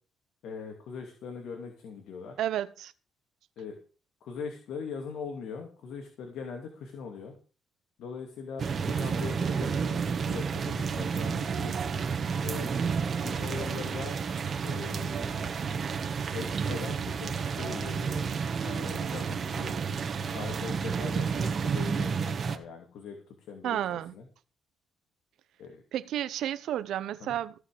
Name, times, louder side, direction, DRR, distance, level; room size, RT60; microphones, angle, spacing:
voice 1, 0.4-2.4 3.6-3.8 4.2-7.3 8.0-11.7 12.4-12.7 13.2-14.1 14.6-15.8 16.3-18.3 18.6-19.8 20.3-24.3 25.6-25.8 27.2-27.4, left 5 dB, 80° left, 2.6 m, -41 dB
voice 2, 2.4-2.9 23.6-24.1 25.9-27.5, right 11 dB, 80° right, 0.9 m, -31 dB
sound 1, 8.6-22.6, right 6 dB, 45° right, 1.6 m, -31 dB
16.0 x 5.5 x 6.9 m
cardioid pair, 90°, 0 cm